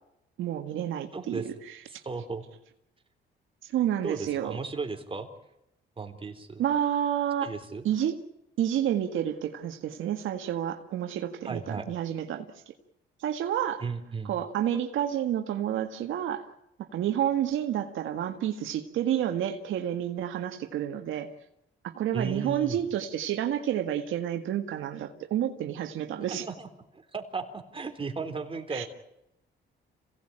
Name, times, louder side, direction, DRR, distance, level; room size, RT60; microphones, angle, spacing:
voice 1, 0.4-1.8 3.6-4.6 6.6-7.5 7.8-8.2 8.6-12.7 13.2-13.8 14.2-16.5 16.8-21.3 21.8-26.4 28.7-28.8, right 10 dB, 80° right, 5 dB, 1.8 m, -30 dB
voice 2, 1.1-1.5 1.9-2.4 4.0-5.3 6.0-6.6 7.4-7.8 11.4-11.9 13.8-14.3 22.1-22.8 26.3-26.7 26.9-28.9, right 4 dB, 25° right, 5 dB, 3.9 m, -35 dB
27.0 x 17.5 x 8.9 m, 0.85 s
cardioid pair, 90°, 20 cm